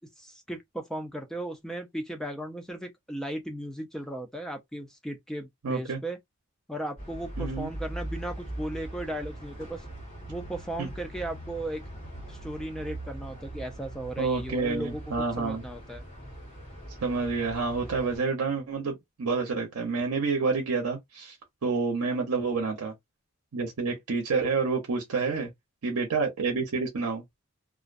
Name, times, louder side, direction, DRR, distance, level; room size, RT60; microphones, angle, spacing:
voice 1, 0.2-6.2 6.7-9.9 10.3-11.8 12.3-16.0, right 1 dB, ahead, 0.3 m, -36 dB
voice 2, 5.6-6.0 7.4-7.7 10.8-10.9 14.2-15.6 17.0-21.4 21.6-22.9 23.5-25.5 25.8-27.2, right 4 dB, 80° right, 0.6 m, -28 dB
sound 1, 7.0-18.2, right 1 dB, 25° left, 1.3 m, -41 dB
2.4 x 2.1 x 2.4 m
head